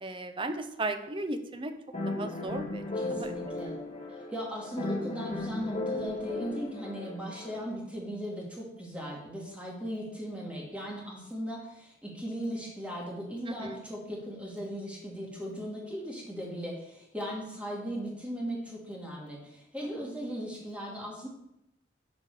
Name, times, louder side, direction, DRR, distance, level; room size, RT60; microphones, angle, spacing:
voice 1, 0.0-1.7 2.1-2.8 3.2-3.4 13.5-13.8 20.0-20.1, right 2 dB, 30° right, 8 dB, 0.7 m, -35 dB
sound 1, 1.9-7.6, left 2 dB, 35° left, 2.3 m, -36 dB
voice 2, 3.0-3.8 4.1-21.3, equal, 5° right, -3 dB, 2.2 m, -38 dB
11.5 x 4.3 x 4.9 m, 0.84 s
head